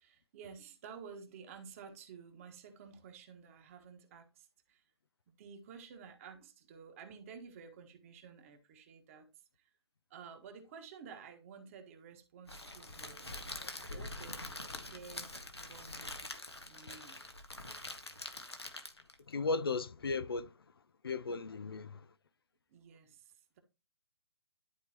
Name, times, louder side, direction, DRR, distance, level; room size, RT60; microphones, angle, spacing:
voice 1, 0.0-4.8 5.3-9.3 9.6-9.7 10.1-13.4 13.9-14.5 14.8-15.3 15.7-16.3 16.6-17.3 21.9-22.0 22.7-23.6, right 6 dB, 35° right, 1.4 m, -52 dB
Crackle, 12.5-19.2, left 1 dB, 85° left, 1.6 m, -45 dB
voice 2, 13.6-14.0 19.3-20.5 21.0-22.1, left 4 dB, 65° left, 0.6 m, -36 dB
11.5 x 4.5 x 2.9 m
figure-of-eight pair, 130°, 13 cm